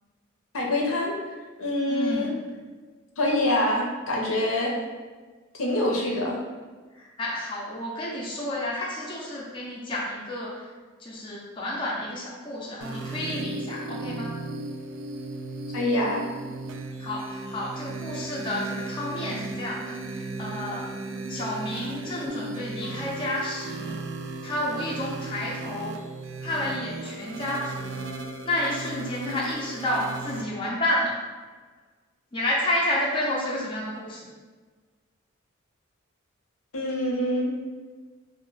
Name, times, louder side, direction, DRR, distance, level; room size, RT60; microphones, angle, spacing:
voice 1, 0.5-1.2 1.6-2.3 3.2-4.7 5.5-6.4 15.7-16.2 36.7-37.6, left 1 dB, 75° left, -1 dB, 0.6 m, -25 dB
voice 2, 1.9-2.3 7.0-10.6 11.0-14.3 17.0-20.9 21.3-23.9 24.4-26.0 26.4-28.0 28.5-31.1 32.3-34.2, left 1 dB, 25° left, -4 dB, 0.4 m, -30 dB
sound 1, 12.8-30.4, right 2 dB, 60° right, 0.3 m, -36 dB
2.8 x 2.0 x 3.9 m, 1.4 s
head